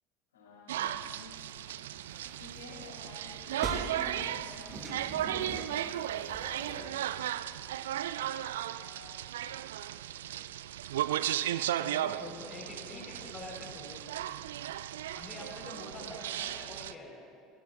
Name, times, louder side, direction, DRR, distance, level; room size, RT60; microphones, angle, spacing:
voice 1, 0.3-1.4 2.3-7.1 7.8-8.1 8.7-9.4 9.8-10.6 12.6-13.1 15.9-16.6, left 3 dB, 75° left, -3 dB, 4.0 m, -53 dB
sound 1, 0.7-16.9, right 12 dB, 70° right, 0.3 m, -36 dB
sound 2, 1.3-6.9, right 2 dB, 40° right, 4.3 m, -44 dB
voice 2, 11.8-14.0 15.1-17.1, left 2 dB, 30° left, -1 dB, 4.6 m, -46 dB
24.0 x 17.5 x 2.6 m, 2.5 s
figure-of-eight pair, 70°, 0 cm